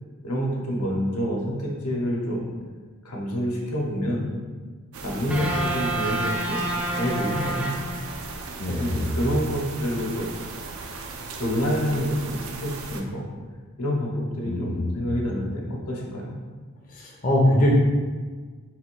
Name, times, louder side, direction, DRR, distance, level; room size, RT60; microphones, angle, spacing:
voice 1, 0.2-2.5 3.0-4.3 5.0-7.7 8.7-10.3 11.4-13.2 13.8-16.3, equal, 90° left, -2 dB, 1.0 m, -27 dB
sound 1, 4.9-13.0, right 4 dB, 65° right, 0.5 m, -37 dB
sound 2, 5.3-8.5, right 1 dB, 5° right, 0.4 m, -29 dB
voice 2, 8.6-9.0 14.4-15.0 16.9-17.7, left 1 dB, 40° left, -3 dB, 0.6 m, -23 dB
3.9 x 2.6 x 4.5 m, 1.5 s
head